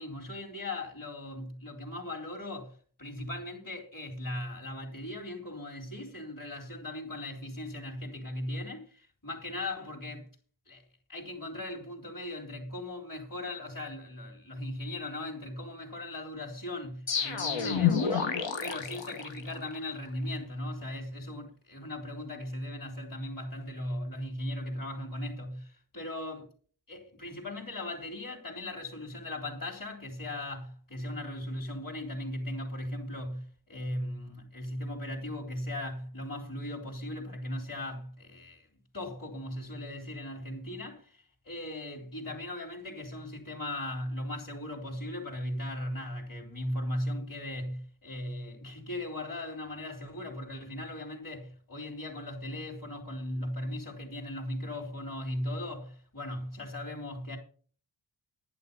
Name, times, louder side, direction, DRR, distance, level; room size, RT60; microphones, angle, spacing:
voice 1, 0.0-10.3 10.7-10.8 11.1-26.5 26.9-38.7 38.9-57.4, left 1 dB, 50° left, 3.6 m, -38 dB
sound 1, 17.1-19.8, left 7 dB, 85° left, 1.8 m, -29 dB
10.5 x 9.9 x 5.3 m
wide cardioid pair, 85°, 44 cm